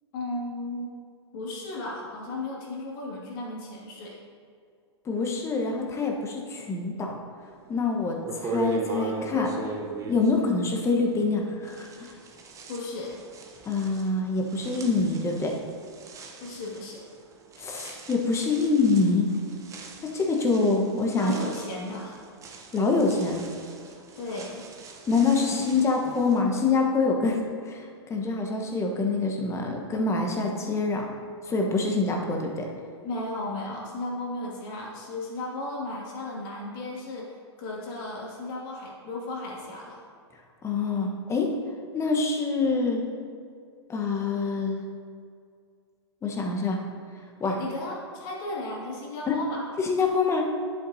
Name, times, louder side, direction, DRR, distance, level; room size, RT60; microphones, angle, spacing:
voice 1, 0.1-0.9 1.3-4.2 12.7-13.2 16.4-17.0 21.1-22.2 24.2-24.7 33.0-40.0 47.4-49.7, left 2 dB, 50° left, -3 dB, 2.3 m, -35 dB
voice 2, 5.1-7.1 7.7-9.5 10.1-11.9 13.6-15.5 17.6-19.3 20.0-21.3 22.7-23.4 25.1-27.4 27.7-27.8 28.1-31.0 31.5-32.7 40.6-41.5 41.9-43.0 43.9-44.8 46.2-46.8 47.4-47.6 49.3-49.4 49.8-50.5, left 4 dB, 20° left, 1 dB, 1.2 m, -25 dB
sound 1, 7.7-7.8 8.2-11.3 11.7-26.4, right 4 dB, 20° right, 1.0 m, -39 dB
10.0 x 8.2 x 2.8 m, 2.2 s
hypercardioid pair, 110°, 14 cm